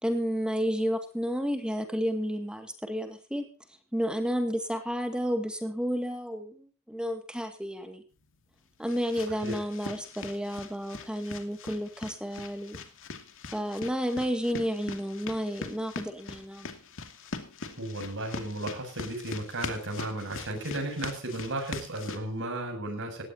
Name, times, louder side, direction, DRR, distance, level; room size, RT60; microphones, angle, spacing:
voice 1, 0.0-3.5 3.9-8.0 8.8-12.8 13.5-16.7, equal, 5° right, 5 dB, 2.2 m, -31 dB
sound 1, 8.2-22.2, left 4 dB, 60° left, 2.4 m, -42 dB
voice 2, 9.2-9.6 17.8-23.2, right 1 dB, 60° right, 4 dB, 7.5 m, -34 dB
18.5 x 17.0 x 2.9 m, 0.34 s
head